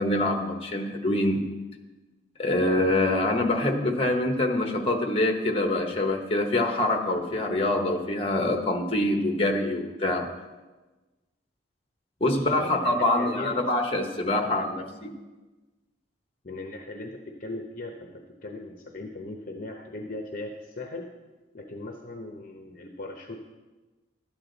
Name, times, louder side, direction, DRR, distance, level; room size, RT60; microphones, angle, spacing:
voice 1, 0.0-1.4 2.4-10.3 12.2-15.1, left 1 dB, 30° left, 4 dB, 1.0 m, -25 dB
voice 2, 12.2-13.5 16.4-21.1 21.5-23.5, left 2 dB, 45° left, 3 dB, 0.8 m, -38 dB
12.5 x 8.4 x 4.0 m, 1.2 s
head